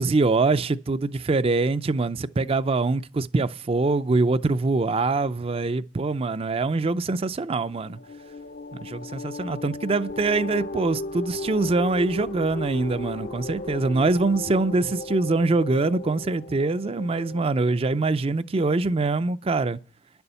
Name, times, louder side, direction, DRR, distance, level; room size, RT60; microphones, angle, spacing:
voice 1, 0.0-8.0 8.7-19.8, right 3 dB, 30° right, 0.4 m, -24 dB
sound 1, 7.6-17.9, left 2 dB, 50° left, 0.6 m, -36 dB
10.5 x 7.0 x 6.8 m
head